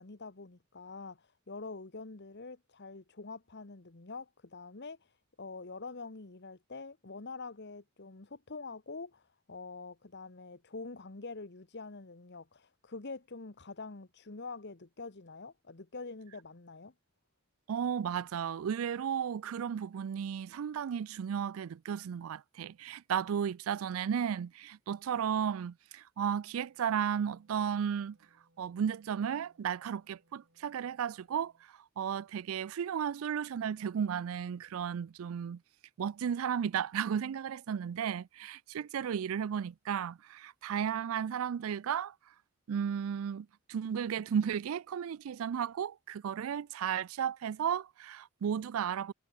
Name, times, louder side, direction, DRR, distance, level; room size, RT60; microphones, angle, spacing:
voice 1, 0.0-16.9, left 3 dB, 55° left, 1.2 m, -45 dB
voice 2, 17.7-28.2 28.6-35.6 36.0-42.1 42.7-49.1, right 8 dB, 75° right, 0.4 m, -34 dB
Wind instrument woodwind instrument, 26.5-31.7, right 1 dB, 55° right, 6.0 m, -72 dB
head